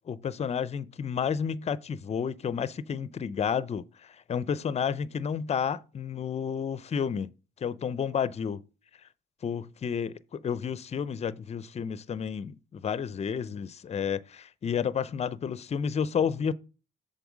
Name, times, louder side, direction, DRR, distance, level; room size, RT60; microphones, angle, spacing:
voice 1, 0.1-7.3 7.6-8.6 9.4-16.5, left 7 dB, 35° left, 0.5 m, -31 dB
7.0 x 3.9 x 6.1 m
cardioid pair, 90°, 20 cm